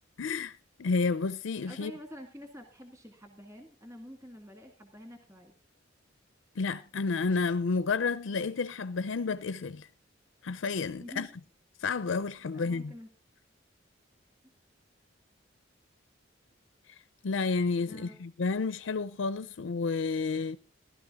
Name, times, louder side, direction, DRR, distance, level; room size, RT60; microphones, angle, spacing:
voice 1, 0.2-1.9 6.6-9.9 10.4-11.3 11.8-12.9 16.9-17.0 17.2-20.6, left 4 dB, 85° left, 0.5 m, -31 dB
voice 2, 1.7-5.5 10.9-11.3 12.5-13.1 17.8-18.2, equal, 15° right, 1.9 m, -47 dB
15.5 x 12.0 x 3.6 m
head